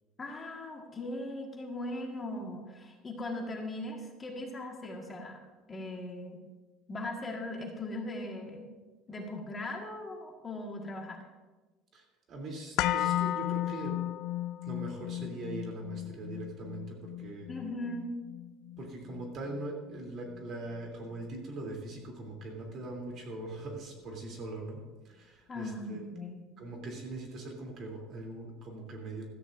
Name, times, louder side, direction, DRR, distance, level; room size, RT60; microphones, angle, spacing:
voice 1, 0.2-5.4 5.7-6.4 6.9-8.7 9.1-11.2 17.5-18.1 25.5-26.5, left 1 dB, 20° left, 0 dB, 1.7 m, -39 dB
voice 2, 11.9-13.9 14.6-17.5 18.8-24.8 25.0-26.0 26.6-29.3, right 2 dB, 45° right, 1 dB, 3.1 m, -41 dB
sound 1, 12.8-20.9 21.2-21.3, left 13 dB, 65° left, 0.5 m, -35 dB
16.5 x 13.5 x 2.6 m, 1.2 s
cardioid pair, 140°, 0 cm